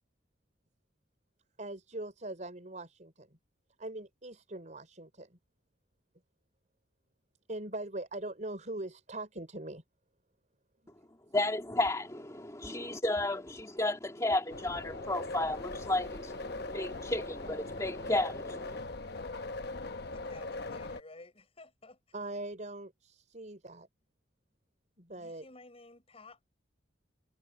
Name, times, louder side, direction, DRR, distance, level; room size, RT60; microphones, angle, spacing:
voice 1, 1.6-3.4 3.8-5.4 7.5-9.8 10.8-10.9 22.1-23.9 25.0-25.5, right 2 dB, 45° right, 5.3 m, -41 dB
voice 2, 11.3-18.8, left 2 dB, 20° left, 2.1 m, -33 dB
sound 1, 14.5-21.0, left 2 dB, 60° left, 0.9 m, -40 dB
voice 3, 20.1-22.0 25.2-26.5, left 2 dB, 35° left, 6.2 m, -53 dB
head